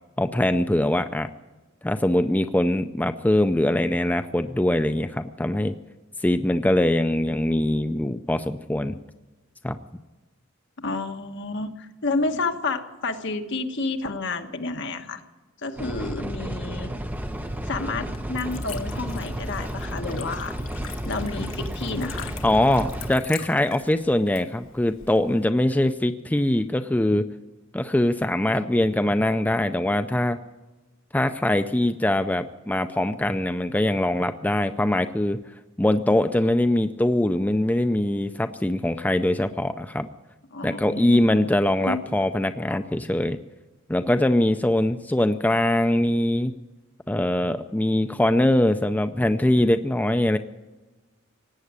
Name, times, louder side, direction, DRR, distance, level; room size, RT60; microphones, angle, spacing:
voice 1, 0.2-1.3 1.8-5.7 6.2-9.0 9.6-9.8 22.4-27.2 27.7-30.4 31.1-35.4 35.8-40.1 40.6-43.4 43.9-46.5 47.1-50.4, left 1 dB, 10° left, 9 dB, 0.4 m, -22 dB
voice 2, 10.8-15.2 15.6-16.9 17.7-20.6 21.0-22.3 40.5-41.4 41.9-42.0, left 3 dB, 60° left, 5 dB, 1.4 m, -30 dB
sound 1, 15.8-23.1, equal, 10° right, 1.0 m, -32 dB
Liquid, 16.9-25.4, left 8 dB, 80° left, 1.5 m, -44 dB
18.0 x 8.4 x 9.6 m, 1.1 s
head